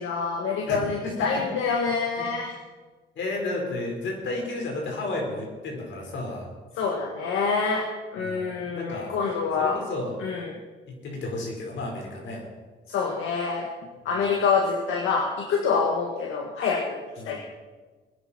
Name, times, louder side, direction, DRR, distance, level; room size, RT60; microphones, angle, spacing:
voice 1, 0.0-2.6 6.8-7.9 8.1-9.8 10.2-10.6 12.9-13.7 14.1-17.4, left 5 dB, 85° left, 1 dB, 1.8 m, -26 dB
voice 2, 0.6-1.1 2.1-2.3 3.1-6.5 8.2-10.3 11.0-12.4 14.0-14.2 17.2-17.4, left 2 dB, 70° left, 0 dB, 4.9 m, -33 dB
22.5 x 10.5 x 4.5 m, 1.3 s
cardioid pair, 90°, 20 cm